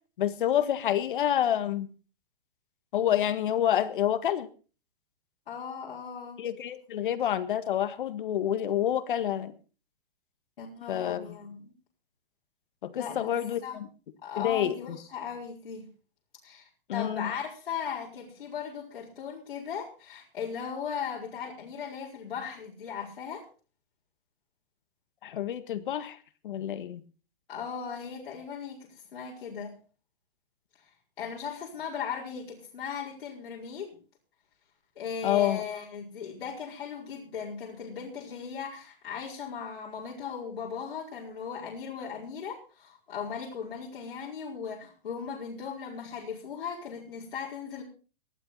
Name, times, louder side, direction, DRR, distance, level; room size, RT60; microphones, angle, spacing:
voice 1, 0.2-1.9 2.9-4.5 6.4-9.5 10.9-11.4 12.8-13.9 14.4-15.0 16.9-17.3 25.2-26.2 26.4-27.0 35.2-35.6, left 10 dB, 60° left, 12 dB, 1.7 m, -28 dB
voice 2, 5.5-6.4 10.6-11.7 13.0-13.8 14.2-15.9 16.4-23.4 27.5-29.8 31.2-34.0 35.0-47.8, left 6 dB, 80° left, -4 dB, 5.1 m, -38 dB
19.5 x 12.5 x 4.1 m, 0.36 s
hypercardioid pair, 170°, 29 cm